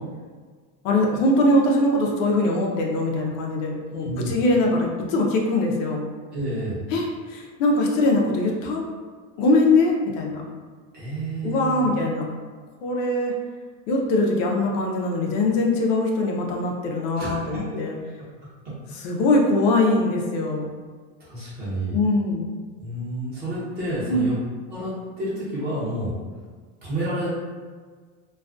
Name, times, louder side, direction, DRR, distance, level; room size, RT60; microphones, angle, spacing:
voice 1, 0.8-6.0 6.9-8.8 9.4-10.4 11.4-12.3 12.8-13.3 13.9-17.9 19.0-20.7 21.9-22.5 24.1-24.3, left 2 dB, 90° left, 0 dB, 0.6 m, -22 dB
voice 2, 3.9-4.4 6.3-6.8 10.9-11.9 17.2-17.8 18.6-18.7 21.2-22.0 22.8-24.3 24.7-26.1 26.8-27.3, right 1 dB, 25° right, -9 dB, 1.0 m, -30 dB
2.4 x 2.2 x 2.4 m, 1.6 s
cardioid pair, 155°, 37 cm